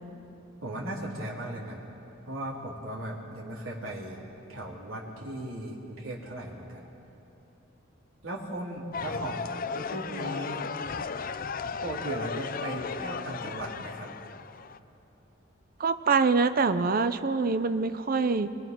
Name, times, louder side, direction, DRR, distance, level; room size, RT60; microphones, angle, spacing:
voice 1, 0.6-1.8 2.3-4.2 4.5-6.9 8.2-9.4 9.7-10.7 11.8-14.2, right 1 dB, 85° right, -5 dB, 3.8 m, -37 dB
sound 1, 8.9-14.8, left 5 dB, 45° left, 0.6 m, -35 dB
voice 2, 15.8-18.5, right 4 dB, 45° right, 10 dB, 0.6 m, -25 dB
28.0 x 21.5 x 6.1 m, 3.0 s
head